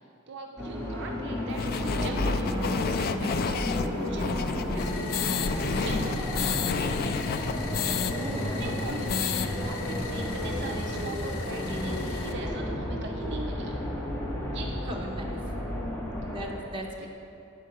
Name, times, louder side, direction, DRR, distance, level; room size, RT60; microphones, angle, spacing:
voice 1, 0.3-4.4 4.7-7.1 8.6-13.8 14.5-14.9 15.2-15.6 17.0-17.1, right 3 dB, 55° right, 2 dB, 0.5 m, -42 dB
sound 1, 0.6-16.5, left 1 dB, 10° left, 1.0 m, -32 dB
sound 2, 1.6-8.1 8.5-8.6 8.9-9.5, left 6 dB, 45° left, 0.3 m, -30 dB
sound 3, 4.8-12.3, left 5 dB, 85° left, 0.8 m, -41 dB
voice 2, 8.1-9.2 14.8-15.4 16.2-17.1, right 1 dB, 25° right, -1 dB, 1.0 m, -38 dB
9.3 x 4.5 x 6.7 m, 2.7 s
head